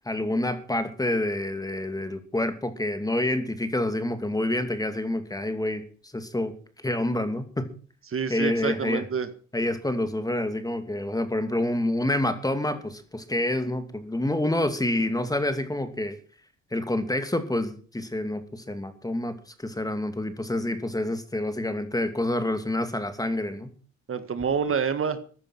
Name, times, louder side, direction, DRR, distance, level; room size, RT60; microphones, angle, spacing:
voice 1, 0.1-5.8 6.1-6.5 6.8-7.7 8.3-9.0 9.5-16.2 16.7-23.7, left 1 dB, 10° left, 9 dB, 2.6 m, -28 dB
voice 2, 8.1-9.3 24.1-25.2, right 6 dB, 45° right, 11 dB, 1.9 m, -27 dB
15.0 x 10.5 x 6.1 m, 0.42 s
cardioid pair, 90°, 30 cm